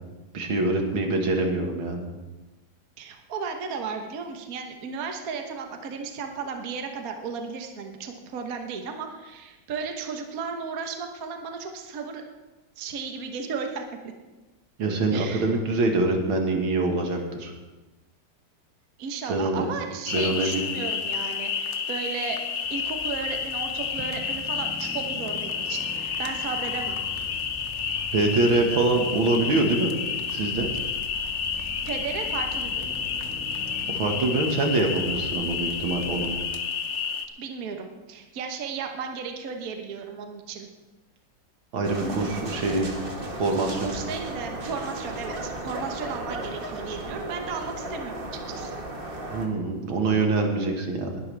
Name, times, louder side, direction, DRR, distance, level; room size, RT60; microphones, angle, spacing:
voice 1, 0.3-2.1 14.8-17.5 19.3-19.7 20.1-20.7 28.1-29.9 30.3-30.7 33.9-36.3 41.7-42.9 43.4-43.9 49.3-51.2, right 2 dB, 80° right, 2 dB, 2.4 m, -24 dB
voice 2, 3.0-12.2 12.8-13.8 15.1-15.6 19.0-22.4 22.7-27.0 31.6-32.9 35.3-35.6 37.4-40.7 42.0-42.5 43.8-48.8, right 5 dB, 50° right, 4 dB, 1.4 m, -34 dB
sound 1, 20.1-37.3, left 6 dB, 55° left, 0.8 m, -30 dB
sound 2, 22.6-36.4, equal, 5° right, 0.9 m, -43 dB
sound 3, 41.8-49.5, right 1 dB, 30° right, 1.6 m, -35 dB
20.5 x 11.5 x 3.4 m, 1.2 s
omnidirectional pair, 2.2 m